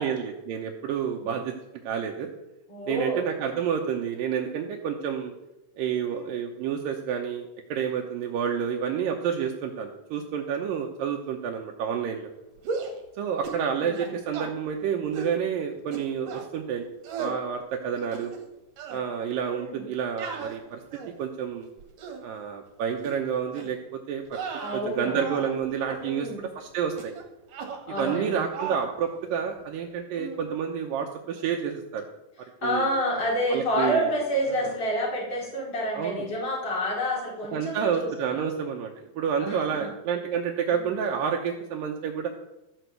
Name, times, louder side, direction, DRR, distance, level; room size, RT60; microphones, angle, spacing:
voice 1, 0.0-1.5 1.8-2.3 2.9-5.3 5.8-12.3 13.2-16.9 17.2-18.3 18.9-20.8 21.2-21.7 22.2-24.4 24.7-27.1 28.0-32.1 32.6-32.9 33.5-34.1 35.9-36.3 37.5-42.3, right 7 dB, 85° right, 2 dB, 2.6 m, -29 dB
voice 2, 2.7-3.2 6.0-6.3 13.8-14.0 19.5-19.8 24.6-25.2 26.0-26.4 27.9-28.4 30.1-30.4 32.6-38.5 39.4-39.9 40.7-41.0, equal, 30° left, -4 dB, 5.0 m, -29 dB
sound 1, 12.6-13.0 13.4-13.7 13.9-14.5 15.1-15.4 15.9-16.5 17.0-17.4 17.9-18.5 18.8-19.0 20.2-21.2 21.8-22.2 23.0-23.2 23.5-23.8 24.3-25.5 25.8-26.0 27.0-27.2 27.5-28.3 28.5-28.9, right 5 dB, 70° right, 3.2 m, -36 dB
13.5 x 6.2 x 8.1 m, 0.94 s
omnidirectional pair, 3.9 m